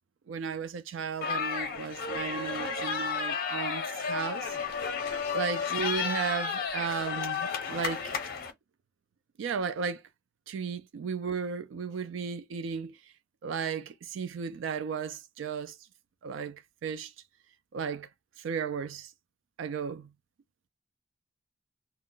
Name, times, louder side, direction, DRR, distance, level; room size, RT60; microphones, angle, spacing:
voice 1, 0.3-4.5 5.3-8.1 9.4-10.0 10.5-13.0 13.4-15.8 16.2-17.1 17.7-18.1 18.4-19.1 19.6-20.1, right 6 dB, 75° right, 0.3 m, -34 dB
sound 1, 1.2-8.5, left 5 dB, 50° left, 0.6 m, -32 dB
2.1 x 2.0 x 3.7 m
head